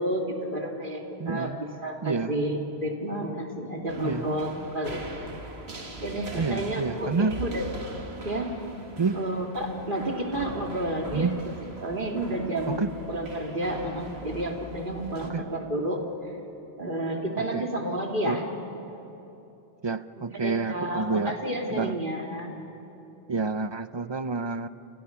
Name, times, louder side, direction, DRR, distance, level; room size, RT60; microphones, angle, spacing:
voice 1, 0.0-5.0 6.0-7.7 8.2-8.5 9.1-11.5 11.8-12.8 13.1-16.1 16.8-18.4 20.3-22.5, right 1 dB, 50° right, 1 dB, 2.8 m, -30 dB
voice 2, 1.2-1.6 2.0-2.3 4.0-4.3 6.3-7.4 9.0-9.1 11.1-11.4 12.7-12.9 15.3-15.4 17.4-17.6 18.2-18.4 19.8-21.3 21.7-22.0 23.3-24.7, right 4 dB, 30° right, 12 dB, 0.6 m, -28 dB
sound 1, 3.9-15.3, right 2 dB, 75° right, 2.3 m, -42 dB
29.0 x 28.0 x 5.8 m, 2.9 s
omnidirectional pair, 1.1 m